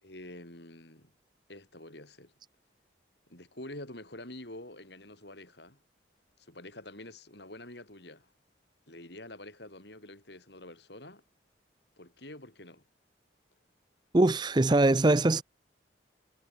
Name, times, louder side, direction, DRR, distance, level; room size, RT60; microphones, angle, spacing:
voice 1, 0.0-1.1 1.5-2.3 3.3-5.8 6.4-8.3 8.9-11.2 12.0-12.8, left 1 dB, 65° left, 6.9 m, -47 dB
voice 2, 14.1-15.4, right 2 dB, 25° right, 0.5 m, -22 dB
head